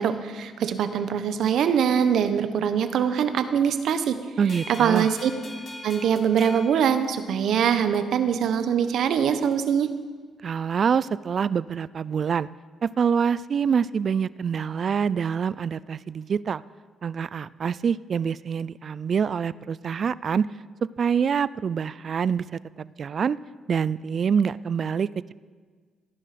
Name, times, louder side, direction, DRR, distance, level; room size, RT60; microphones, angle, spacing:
voice 1, 0.0-4.2 4.7-5.3 5.8-9.9, right 8 dB, 70° right, 10 dB, 1.0 m, -23 dB
voice 2, 4.4-5.1 10.4-12.5 12.8-16.6 17.0-20.5 21.0-23.4 23.7-25.3, right 7 dB, 50° right, 19 dB, 0.4 m, -26 dB
sound 1, 4.5-7.7, left 2 dB, 45° left, 2.1 m, -43 dB
16.5 x 9.9 x 5.9 m, 1.5 s
cardioid pair, 90°, 0 cm